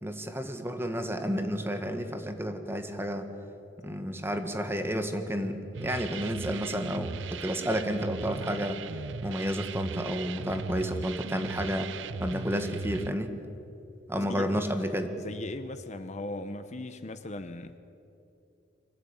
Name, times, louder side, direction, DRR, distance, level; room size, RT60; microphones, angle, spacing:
voice 1, 0.0-3.3 3.8-8.8 9.2-11.9 12.2-13.3 14.1-15.2, equal, 15° right, 6 dB, 1.6 m, -31 dB
sound 1, 5.7-13.1, right 5 dB, 80° right, 0.6 m, -38 dB
voice 2, 14.2-14.7 15.2-17.8, left 2 dB, 40° left, 9 dB, 0.8 m, -38 dB
24.5 x 15.5 x 8.9 m, 2.8 s
head